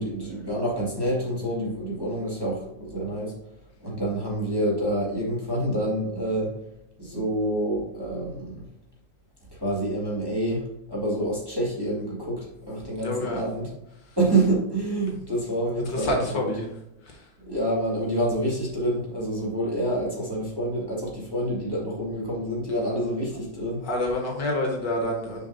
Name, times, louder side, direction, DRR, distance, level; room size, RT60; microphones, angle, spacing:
voice 1, 0.0-3.3 3.8-6.5 7.0-8.7 9.6-13.7 14.2-16.5 17.5-23.8, right 1 dB, 10° right, -6 dB, 1.9 m, -27 dB
voice 2, 13.0-13.4 15.9-16.7 17.1-17.2 23.8-25.5, left 1 dB, 70° left, 0 dB, 2.1 m, -28 dB
6.9 x 6.0 x 2.7 m, 0.86 s
omnidirectional pair, 2.0 m